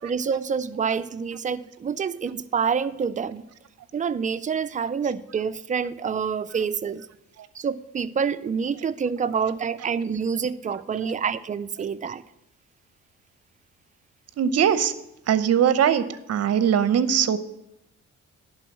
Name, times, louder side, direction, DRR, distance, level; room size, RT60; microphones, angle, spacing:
voice 1, 0.0-3.4 3.9-7.1 7.5-12.2, right 6 dB, 25° right, 0.4 m, -27 dB
voice 2, 14.4-14.9 15.3-17.4, right 8 dB, 55° right, 0.8 m, -21 dB
10.5 x 3.9 x 7.6 m
cardioid pair, 90°, 30 cm